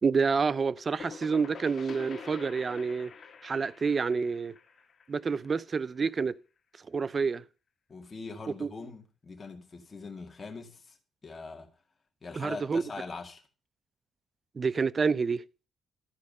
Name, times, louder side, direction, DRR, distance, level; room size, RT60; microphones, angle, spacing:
voice 1, 0.0-3.1 3.4-4.5 5.1-6.4 6.9-7.4 8.6-8.7 12.4-12.8 14.6-15.4, right 5 dB, 35° right, 0.4 m, -28 dB
sound 1, 0.6-6.1, left 6 dB, 50° left, 1.4 m, -47 dB
voice 2, 7.9-11.0 11.2-11.7 12.2-13.4, left 4 dB, 30° left, 2.0 m, -42 dB
13.0 x 4.7 x 5.3 m
cardioid pair, 90°, 0 cm